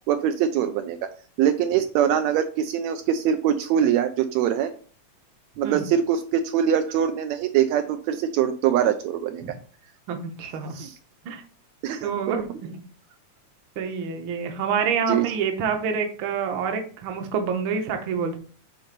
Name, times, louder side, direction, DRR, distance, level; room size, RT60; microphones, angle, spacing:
voice 1, 0.1-1.0 1.4-4.7 5.6-9.4 10.8-10.9 11.8-12.1 15.1-15.3, right 9 dB, 80° right, 7 dB, 1.8 m, -23 dB
voice 2, 10.1-10.8 11.2-11.4 12.0-12.7 13.8-18.4, right 6 dB, 60° right, 5 dB, 1.4 m, -27 dB
6.0 x 3.9 x 5.1 m, 0.42 s
omnidirectional pair, 3.3 m